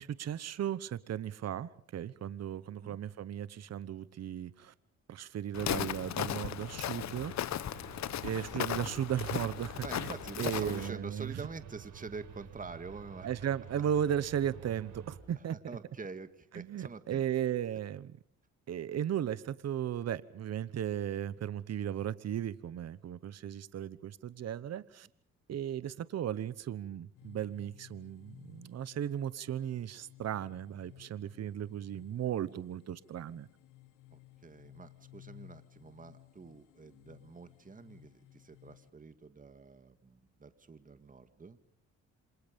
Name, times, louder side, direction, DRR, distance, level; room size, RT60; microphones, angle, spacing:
voice 1, 0.0-4.7 5.1-7.3 8.2-10.1 10.4-11.4 13.2-15.6 16.5-18.1 18.7-25.1 25.5-33.5, right 10 dB, 55° right, 1.1 m, -36 dB
Walk footsteps, 5.5-10.9, left 11 dB, 65° left, 1.1 m, -36 dB
sound 1, 6.7-15.2, right 7 dB, 75° right, 5.5 m, -50 dB
voice 2, 9.8-13.3 15.3-17.2 34.1-41.6, right 4 dB, 25° right, 2.0 m, -46 dB
sound 2, 27.2-38.9, left 17 dB, 90° left, 1.3 m, -58 dB
28.0 x 26.5 x 5.3 m
cardioid pair, 90°, 30 cm